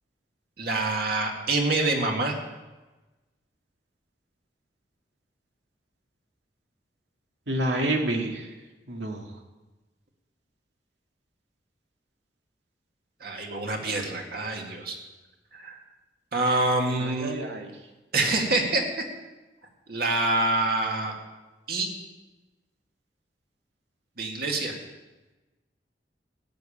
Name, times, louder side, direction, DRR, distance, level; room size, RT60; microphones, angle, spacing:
voice 1, 0.6-2.4 13.2-15.0 15.5-15.8 16.3-17.3 18.1-18.8 19.9-21.1 21.7-21.9 24.2-24.7, right 2 dB, 60° right, 1 dB, 2.1 m, -26 dB
voice 2, 7.5-8.6 8.9-9.4 17.0-17.8, right 1 dB, 90° right, 3 dB, 1.8 m, -29 dB
13.5 x 6.7 x 8.8 m, 1.1 s
head